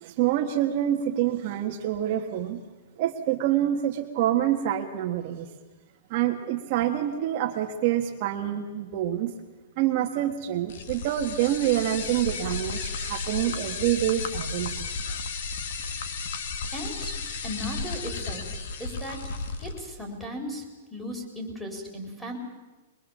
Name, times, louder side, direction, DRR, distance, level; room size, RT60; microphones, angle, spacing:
voice 1, 0.0-2.6 3.0-5.5 6.1-9.3 9.8-14.9, right 12 dB, 40° right, 2 dB, 1.4 m, -26 dB
sound 1, 10.7-19.8, left 4 dB, 60° left, 2.0 m, -33 dB
voice 2, 16.7-17.2 17.4-19.2 19.6-20.6 20.9-22.4, equal, 5° left, -2 dB, 4.3 m, -36 dB
23.0 x 22.0 x 7.3 m, 1.2 s
hypercardioid pair, 160°, 0 cm